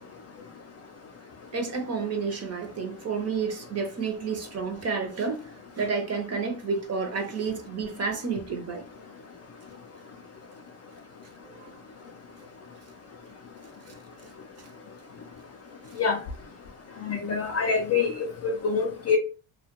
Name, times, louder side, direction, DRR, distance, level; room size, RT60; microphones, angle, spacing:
voice 1, 1.5-5.4 5.8-8.8 11.5-11.7, right 5 dB, 30° right, 0.6 m, -30 dB
voice 2, 17.0-19.2, left 5 dB, 35° left, 0.4 m, -26 dB
2.2 x 2.1 x 2.8 m
cardioid pair, 105°, 50 cm